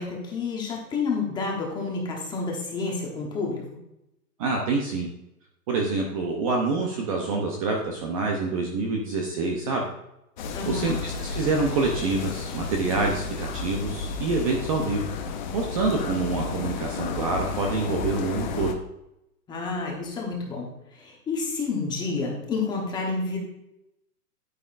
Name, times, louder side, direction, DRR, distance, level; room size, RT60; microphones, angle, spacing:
voice 1, 0.0-3.6 10.5-11.0 19.5-23.4, left 4 dB, 10° left, -1 dB, 1.0 m, -29 dB
voice 2, 4.4-5.1 5.7-9.9 10.6-15.0 15.5-18.8, right 3 dB, 20° right, 1 dB, 0.7 m, -26 dB
sound 1, 10.4-18.7, left 4 dB, 30° left, 0.6 m, -32 dB
9.4 x 9.1 x 2.5 m, 0.85 s
hypercardioid pair, 155°, 47 cm